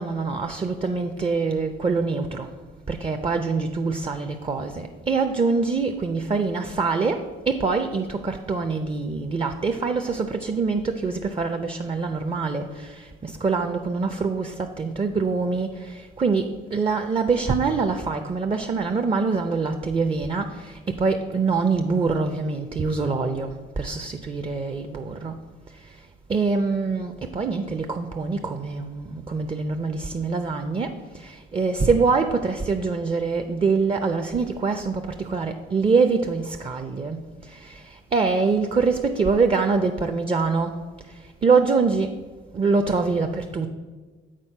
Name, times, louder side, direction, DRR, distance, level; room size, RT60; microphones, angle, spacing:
voice 1, 0.0-2.5 2.9-20.7 21.0-23.5 23.8-25.3 26.3-30.9 31.2-37.2 37.5-37.8 38.1-40.8 41.4-42.1 42.5-43.7, right 4 dB, 25° right, 6 dB, 0.5 m, -24 dB
7.5 x 4.1 x 5.4 m, 1.4 s
cardioid pair, 90°, 20 cm